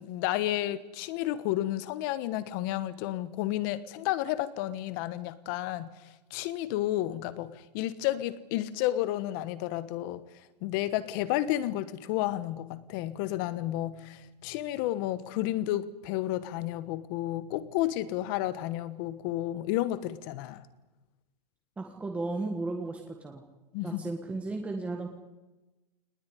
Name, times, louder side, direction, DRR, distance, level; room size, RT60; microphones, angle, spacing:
voice 1, 0.0-5.9 6.3-10.2 10.6-20.6 23.7-24.0, left 14 dB, 30° left, 15 dB, 1.2 m, -31 dB
voice 2, 21.8-23.4 23.8-25.1, right 3 dB, 5° right, 3 dB, 1.5 m, -34 dB
21.5 x 20.0 x 10.0 m, 1.0 s
hypercardioid pair, 165°, 21 cm